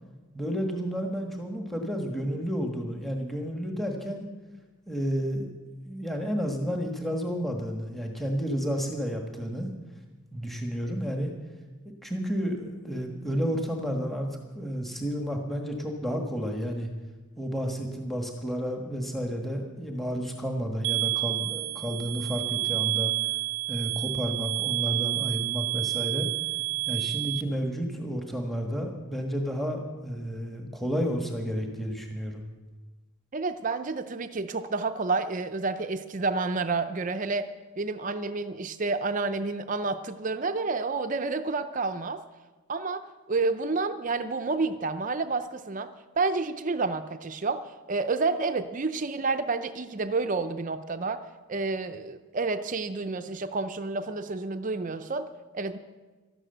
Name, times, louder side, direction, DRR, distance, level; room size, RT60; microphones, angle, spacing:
voice 1, 0.3-4.3 4.9-5.4 5.8-9.7 10.3-11.3 12.0-16.9 17.4-23.1 23.7-26.3 26.9-32.4, equal, ahead, 2 dB, 1.4 m, -31 dB
sound 1, 20.8-27.4, right 20 dB, 85° right, 0.5 m, -29 dB
voice 2, 33.3-37.5 37.8-42.2 42.7-45.9 46.2-51.2 51.5-55.8, right 3 dB, 35° right, 9 dB, 0.5 m, -29 dB
12.5 x 12.5 x 7.8 m, 1.3 s
head